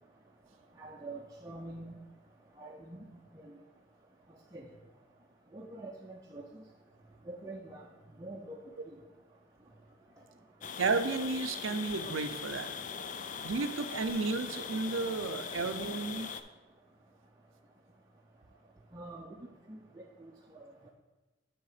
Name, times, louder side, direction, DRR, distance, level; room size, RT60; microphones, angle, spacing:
voice 1, 0.8-1.9 2.6-3.0 3.3-3.5 4.5-4.7 5.5-6.4 7.3-7.8 8.2-8.6 18.9-19.3 19.7-20.3, right 2 dB, 20° right, -2 dB, 0.5 m, -45 dB
sound 1, 10.6-16.4, left 6 dB, 40° left, 0.4 m, -41 dB
voice 2, 10.8-13.1 13.4-16.3, right 3 dB, 90° right, 10 dB, 0.5 m, -33 dB
9.7 x 3.7 x 4.9 m, 1.1 s
head